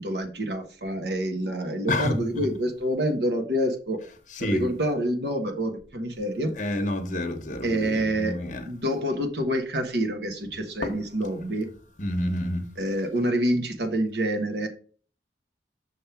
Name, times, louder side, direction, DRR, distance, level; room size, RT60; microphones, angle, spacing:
voice 1, 0.0-4.0 4.4-6.5 7.6-8.4 8.6-11.7 12.8-14.7, equal, 70° right, 1.2 m, -27 dB
voice 2, 1.9-2.5 4.4-4.6 6.6-8.6 10.8-10.9 12.0-12.7, left 1 dB, 45° left, 0.9 m, -29 dB
6.3 x 3.4 x 5.8 m
head